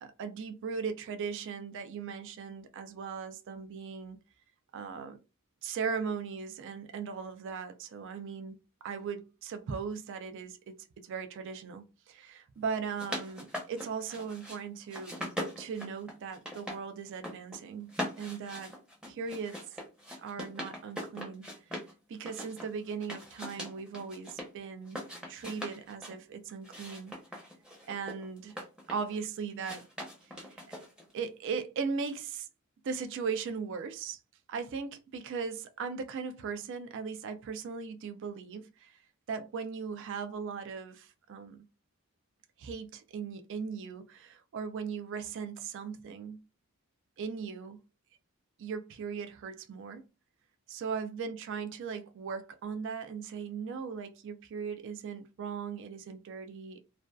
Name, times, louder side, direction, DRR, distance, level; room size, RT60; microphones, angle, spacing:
voice 1, 0.0-4.2 4.7-5.2 5.6-8.6 8.8-10.7 11.0-15.2 15.6-18.7 19.1-19.6 20.2-21.4 22.1-25.0 25.3-27.1 27.9-28.6 28.9-29.8 30.4-30.8 31.1-32.5 32.8-34.2 34.5-39.0 39.3-41.6 42.6-46.4 47.2-47.8 48.6-50.0 50.7-56.8, right 5 dB, 55° right, 0.3 m, -38 dB
sound 1, 12.7-14.6 14.9-16.8 17.1-17.6 17.9-21.9 22.3-24.5 24.9-26.2 26.6-29.2 29.6-31.1, equal, 5° right, 0.6 m, -41 dB
2.4 x 2.2 x 2.2 m
head